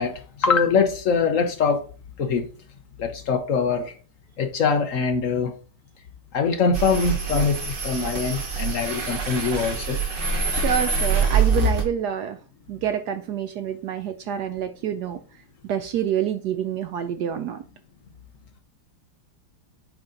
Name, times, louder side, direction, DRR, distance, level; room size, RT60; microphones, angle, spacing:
voice 1, 0.0-1.8 2.2-2.5 3.0-4.0 4.4-5.5 6.3-10.0, left 5 dB, 60° left, 0.8 m, -23 dB
sound 1, 6.7-11.8, right 4 dB, 35° right, 0.9 m, -24 dB
voice 2, 10.5-12.4 12.7-15.2 15.6-17.6, right 9 dB, 80° right, 0.9 m, -27 dB
8.7 x 4.2 x 3.8 m
omnidirectional pair, 2.3 m